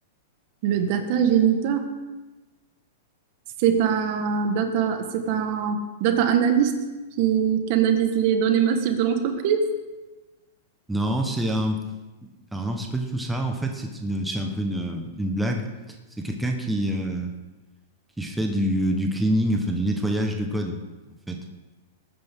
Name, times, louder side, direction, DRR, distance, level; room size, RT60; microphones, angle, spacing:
voice 1, 0.6-1.9 3.6-6.8 7.2-9.7, right 8 dB, 50° right, 7 dB, 1.5 m, -22 dB
voice 2, 10.9-11.8 12.5-15.7 16.2-17.3 18.2-20.8 21.3-21.4, right 1 dB, 5° right, 2 dB, 1.3 m, -26 dB
18.5 x 9.7 x 3.7 m, 1.1 s
hypercardioid pair, 130°, 0 cm